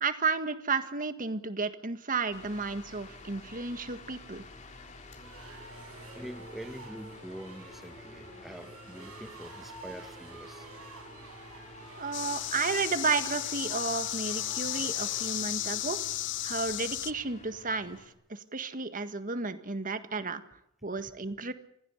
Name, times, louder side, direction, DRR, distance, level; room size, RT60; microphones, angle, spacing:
voice 1, 0.0-4.4 12.0-16.0 16.4-18.0 18.3-20.4 20.8-21.5, right 4 dB, 40° right, 1.8 m, -32 dB
sound 1, 2.3-18.1, left 2 dB, 35° left, 3.5 m, -50 dB
sound 2, 5.2-15.4, right 3 dB, 90° right, 7.8 m, -49 dB
voice 2, 6.1-10.7 14.8-15.0 20.8-20.9, equal, ahead, 1.4 m, -45 dB
sound 3, 12.1-17.1, left 15 dB, 60° left, 0.8 m, -34 dB
26.5 x 17.0 x 8.3 m
head